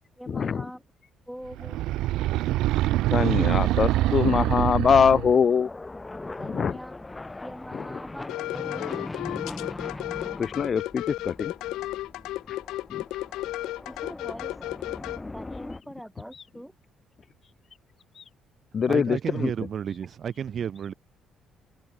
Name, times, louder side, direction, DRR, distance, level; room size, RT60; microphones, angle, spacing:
voice 1, 0.2-0.8 1.3-1.9 6.4-7.0 7.4-9.1 13.9-14.5 15.3-16.7, equal, ahead, 4.2 m, -42 dB
sound 1, 1.5-5.4, right 16 dB, 85° right, 0.3 m, -24 dB
sound 2, 1.6-15.8, left 2 dB, 15° left, 5.1 m, -41 dB
voice 2, 3.1-5.7 6.5-6.7 10.4-11.5 12.9-13.0 18.2-18.3 18.7-19.5, left 6 dB, 40° left, 0.5 m, -23 dB
sound 3, 8.3-15.2, left 16 dB, 85° left, 1.6 m, -33 dB
voice 3, 18.8-20.9, right 8 dB, 50° right, 2.0 m, -32 dB
cardioid pair, 105°, 0 cm